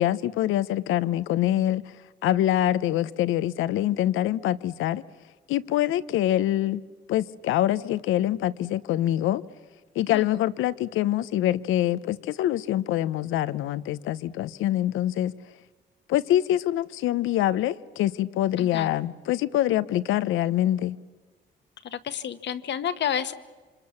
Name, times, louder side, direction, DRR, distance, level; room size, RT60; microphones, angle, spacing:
voice 1, 0.0-1.8 2.2-5.0 5.5-6.8 7.1-9.4 9.9-15.3 16.1-21.0, left 13 dB, 90° left, 0.8 m, -25 dB
voice 2, 18.6-18.9 21.9-23.3, left 9 dB, 65° left, 1.3 m, -30 dB
27.0 x 25.5 x 7.1 m
cardioid pair, 90°, 20 cm